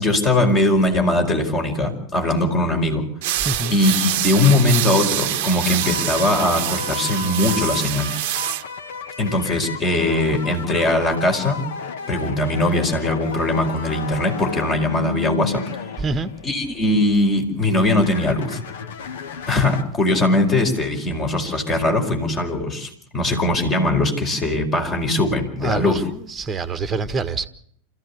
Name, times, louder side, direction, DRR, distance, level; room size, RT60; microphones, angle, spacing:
voice 1, 0.0-3.0 3.7-8.1 9.2-11.7 12.1-15.6 16.4-18.6 19.5-26.0, left 2 dB, 25° left, 4.9 m, -20 dB
sound 1, 3.2-8.6, right 13 dB, 50° right, 1.0 m, -25 dB
voice 2, 3.4-3.8 16.0-16.3 25.6-27.4, right 3 dB, 15° right, 1.5 m, -26 dB
sound 2, 5.8-17.2 17.7-19.8, left 6 dB, 55° left, 1.8 m, -33 dB
27.0 x 15.0 x 8.4 m
figure-of-eight pair, 90°, 0 cm